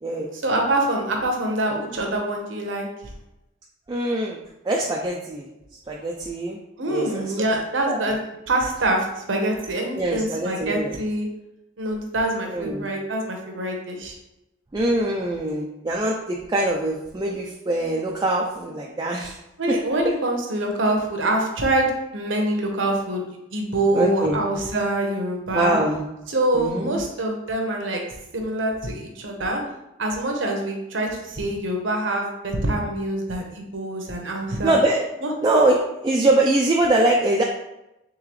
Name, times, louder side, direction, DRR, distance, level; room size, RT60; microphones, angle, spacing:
voice 1, 0.4-2.8 6.8-8.2 8.5-11.3 11.8-14.1 19.6-23.3 23.5-25.8 26.3-28.0 28.3-29.6 30.0-34.7 35.2-35.3, right 1 dB, 75° right, 2 dB, 0.9 m, -25 dB
voice 2, 3.9-4.4 4.6-5.5 5.9-6.6 6.9-7.3 7.5-7.6 7.9-8.1 10.0-11.0 12.5-12.9 14.7-19.4 23.9-24.4 25.5-26.0 26.5-27.0 34.6-35.1 35.4-37.4, right 1 dB, 20° right, -2 dB, 0.3 m, -23 dB
3.8 x 3.7 x 3.1 m, 0.92 s
head